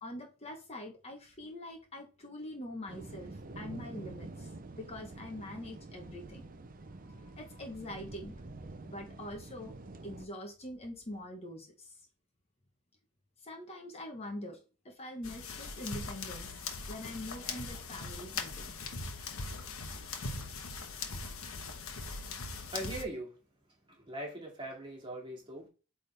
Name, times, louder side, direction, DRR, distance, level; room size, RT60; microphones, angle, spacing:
voice 1, 0.0-4.5 4.8-6.5 7.1-8.4 8.8-9.7 10.0-12.1 13.4-18.7, left 1 dB, 30° left, 1.1 m, -44 dB
sound 1, 2.9-10.3, right 2 dB, 40° right, 0.6 m, -47 dB
sound 2, 15.2-23.0, left 4 dB, 70° left, 1.2 m, -40 dB
voice 2, 22.3-23.4 23.9-25.7, right 1 dB, 25° right, 2.2 m, -41 dB
8.4 x 3.7 x 3.4 m
head